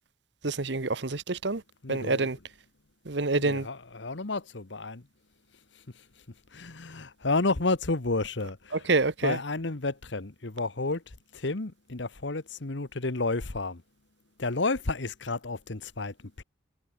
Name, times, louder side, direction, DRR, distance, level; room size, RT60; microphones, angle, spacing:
voice 1, 0.4-1.6 1.9-2.4 3.0-3.7 8.9-9.4, right 3 dB, 65° right, 1.1 m, -27 dB
voice 2, 1.8-2.3 3.4-5.1 5.7-8.8 9.2-13.8 14.4-16.4, left 3 dB, 70° left, 1.3 m, -31 dB
head